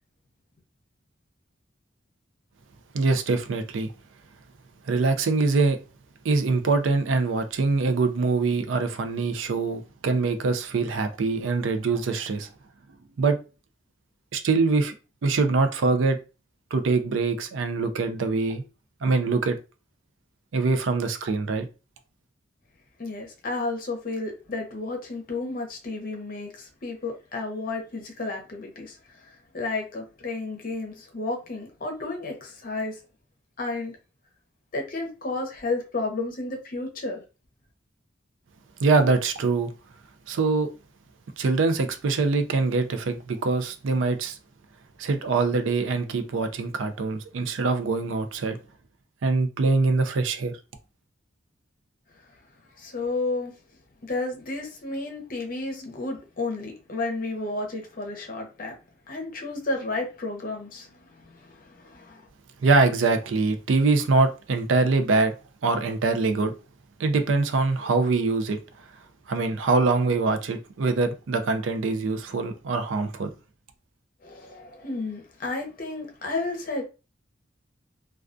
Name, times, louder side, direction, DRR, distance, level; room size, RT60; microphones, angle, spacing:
voice 1, 2.9-3.9 4.9-5.8 6.2-12.5 13.2-13.4 14.3-14.9 15.2-16.2 16.7-18.6 19.0-19.6 20.5-21.7 38.8-39.7 40.3-40.7 41.4-44.4 45.0-48.6 49.2-50.5 62.6-65.3 65.6-66.5 67.0-68.6 69.3-73.3, right 3 dB, 80° right, 0.4 m, -23 dB
voice 2, 23.0-29.0 29.3-33.0 33.6-34.0 34.7-37.2 52.8-53.5 54.0-58.8 59.1-62.3 74.2-76.8, left 3 dB, 45° left, 0.7 m, -32 dB
2.3 x 2.3 x 2.5 m
head